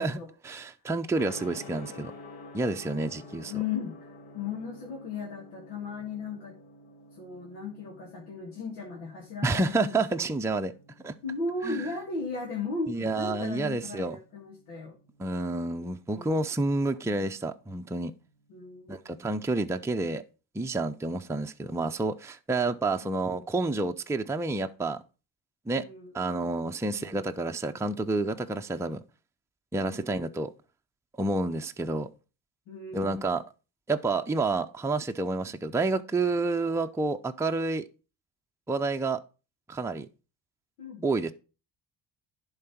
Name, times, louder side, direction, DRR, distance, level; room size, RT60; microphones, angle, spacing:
voice 1, 0.4-2.1 2.5-3.5 9.4-10.7 11.0-11.1 11.6-11.8 12.9-14.2 15.2-18.1 18.9-20.2 20.5-25.0 25.7-25.8 26.1-29.0 29.7-30.5 31.2-32.1 32.9-33.4 33.9-37.9 38.7-39.2 39.7-40.1 41.0-41.3, right 3 dB, 5° right, 0.6 m, -29 dB
Gong, 1.1-20.1, left 2 dB, 55° left, 1.6 m, -51 dB
voice 2, 3.4-6.6 7.1-10.3 11.2-15.0 16.1-16.4 18.5-19.3 23.0-23.5 25.7-26.4 26.9-27.2 29.9-30.4 32.7-33.2 40.8-41.0, left 4 dB, 85° left, 2.0 m, -37 dB
11.0 x 4.0 x 5.9 m
supercardioid pair, 60°, 49 cm